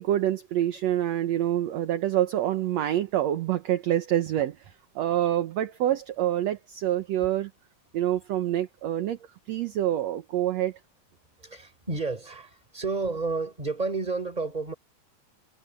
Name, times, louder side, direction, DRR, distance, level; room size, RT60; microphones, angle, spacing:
voice 1, 0.0-4.6 5.0-7.5 7.9-9.2 9.5-10.8, right 12 dB, 65° right, 2.0 m, -26 dB
voice 2, 11.4-14.7, right 3 dB, 10° right, 4.5 m, -31 dB
omnidirectional pair, 3.6 m